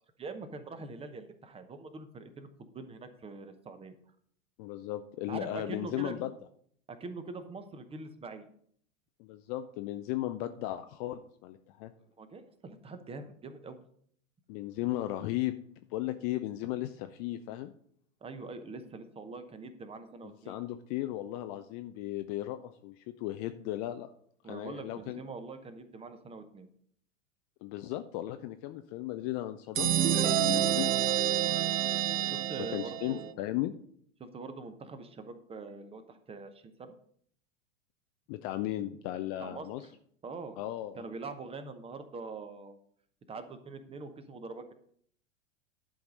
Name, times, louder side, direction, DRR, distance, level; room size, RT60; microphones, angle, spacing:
voice 1, 0.2-3.9 5.3-6.2 6.9-8.4 12.2-13.8 18.2-20.6 24.4-26.7 32.2-33.4 34.2-36.9 39.4-39.7 40.2-40.6 41.0-42.8 43.3-44.7, right 3 dB, 15° right, 10 dB, 0.8 m, -43 dB
voice 2, 4.6-6.3 9.2-11.9 14.5-15.5 15.9-17.7 20.2-24.1 24.4-25.2 27.6-30.9 32.7-33.7 38.3-39.8 40.6-41.0, left 14 dB, 30° left, 9 dB, 0.4 m, -36 dB
sound 1, 29.7-33.3, right 11 dB, 90° right, 0.5 m, -28 dB
11.0 x 4.7 x 5.2 m, 0.63 s
figure-of-eight pair, 95°, 38 cm